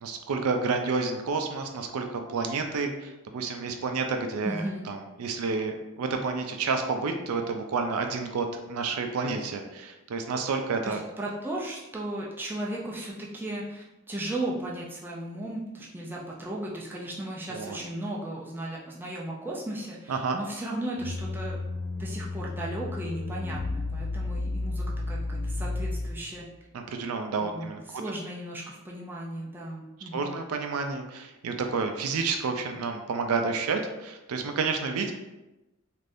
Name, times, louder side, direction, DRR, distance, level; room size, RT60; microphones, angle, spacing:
voice 1, 0.0-11.0 17.5-17.8 20.1-20.4 26.7-28.0 30.1-35.1, right 4 dB, 80° right, 5 dB, 0.4 m, -30 dB
voice 2, 4.4-4.9 10.8-21.6 22.0-26.5 27.4-30.3, right 1 dB, 10° right, -4 dB, 0.4 m, -36 dB
sound 1, 21.0-26.4, left 2 dB, 75° left, 0.4 m, -32 dB
3.3 x 2.5 x 2.5 m, 1.0 s
head